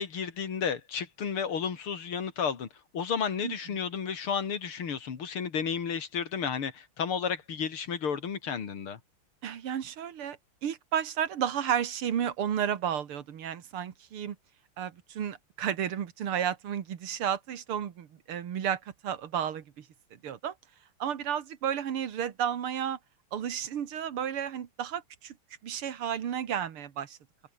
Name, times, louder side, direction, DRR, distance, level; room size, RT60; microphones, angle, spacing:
voice 1, 0.0-2.7 2.9-9.0, left 6 dB, 80° left, 3.2 m, -32 dB
voice 2, 9.4-10.4 10.6-14.4 14.8-19.8 20.2-20.5 21.0-23.0 23.3-25.3 25.6-27.2, right 9 dB, 90° right, 2.5 m, -32 dB
open air
omnidirectional pair, 2.3 m